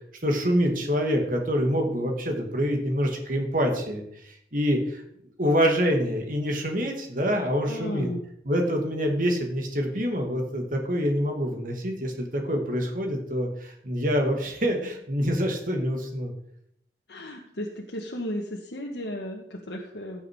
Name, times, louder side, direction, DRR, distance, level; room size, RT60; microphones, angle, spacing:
voice 1, 0.2-5.0 5.4-8.1 8.5-16.3, equal, 50° right, 3 dB, 2.6 m, -26 dB
voice 2, 7.6-8.2 17.1-20.2, equal, 80° left, 0 dB, 1.5 m, -34 dB
16.0 x 7.3 x 4.8 m, 0.72 s
head